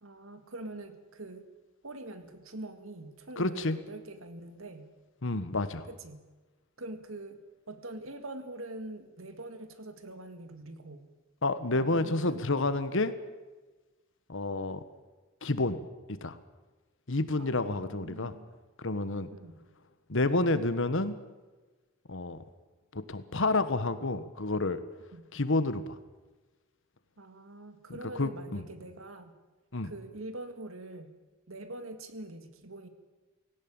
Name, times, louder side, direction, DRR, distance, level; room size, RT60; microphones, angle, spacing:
voice 1, 0.0-1.5 1.8-4.9 5.9-6.3 6.8-7.4 7.7-11.0 11.7-12.4 17.4-18.5 19.3-19.5 25.1-25.2 27.2-29.3 29.8-31.2 31.5-32.9, right 2 dB, 70° right, 9 dB, 2.1 m, -44 dB
voice 2, 3.4-3.8 5.2-5.9 11.4-13.1 14.3-14.8 15.4-15.8 16.2-16.4 17.1-18.3 18.8-19.3 20.1-21.2 22.1-22.4 22.9-24.8 25.3-26.0 28.1-28.6 29.7-29.9, left 2 dB, 65° left, 13 dB, 1.4 m, -29 dB
18.0 x 17.5 x 8.9 m, 1.2 s
head